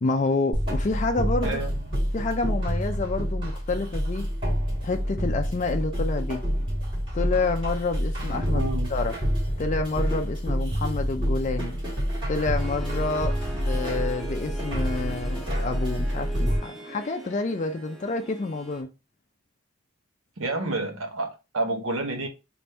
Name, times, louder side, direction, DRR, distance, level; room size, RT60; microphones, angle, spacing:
voice 1, 0.0-1.6 2.1-4.2 4.8-6.4 7.1-9.1 9.6-11.7 12.3-18.9, left 3 dB, 35° left, 0.4 m, -28 dB
sound 1, 0.5-16.6, equal, 25° right, 1.6 m, -27 dB
voice 2, 1.4-2.0 8.5-8.9 20.4-22.3, right 2 dB, 80° right, 0.9 m, -29 dB
Harp, 12.6-18.8, right 2 dB, ahead, 0.6 m, -40 dB
3.4 x 2.6 x 4.1 m
head